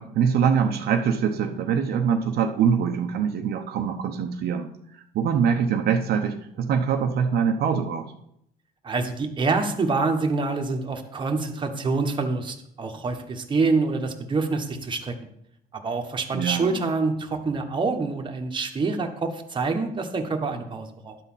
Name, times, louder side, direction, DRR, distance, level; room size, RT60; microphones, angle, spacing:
voice 1, 0.0-4.7 4.9-8.1 16.3-16.8, right 7 dB, 70° right, 4 dB, 0.9 m, -24 dB
voice 2, 8.8-15.1 15.7-21.2, right 3 dB, 30° right, 3 dB, 1.3 m, -26 dB
11.0 x 4.1 x 7.4 m, 0.74 s
cardioid pair, 110°, 17 cm